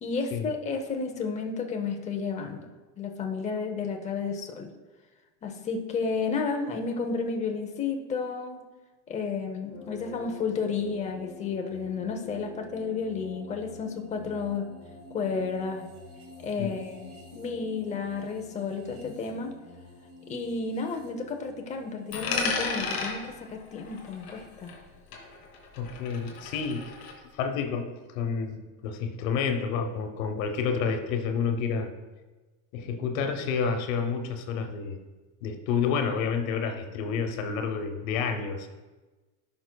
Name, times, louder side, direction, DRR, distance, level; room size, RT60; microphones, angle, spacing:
voice 1, 0.0-2.7 3.0-4.7 5.4-8.6 9.1-14.7 15.1-15.8 16.4-19.5 20.3-24.7, left 5 dB, 15° left, 3 dB, 0.7 m, -32 dB
sound 1, 9.7-24.7, left 3 dB, 50° right, 2.2 m, -48 dB
Coin (dropping), 22.1-24.9 25.1-27.1, left 4 dB, 45° left, 2.2 m, -34 dB
voice 2, 25.8-26.9 27.4-31.9 32.7-35.0 35.4-38.7, left 6 dB, 75° left, 5 dB, 1.1 m, -29 dB
15.5 x 5.9 x 2.3 m, 1.2 s
supercardioid pair, 165°, 41 cm